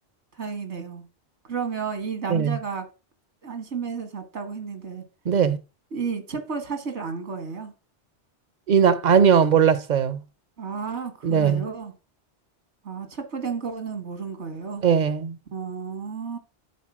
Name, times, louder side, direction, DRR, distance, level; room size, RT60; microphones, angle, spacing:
voice 1, 0.4-1.1 1.4-2.9 3.4-5.0 5.9-7.7 10.6-11.9 12.8-14.8 15.5-16.4, right 5 dB, 85° right, 1.9 m, -32 dB
voice 2, 5.3-5.6 8.7-10.2 11.2-11.6 14.8-15.3, right 7 dB, 50° right, 0.7 m, -19 dB
8.2 x 4.0 x 6.1 m
omnidirectional pair, 1.2 m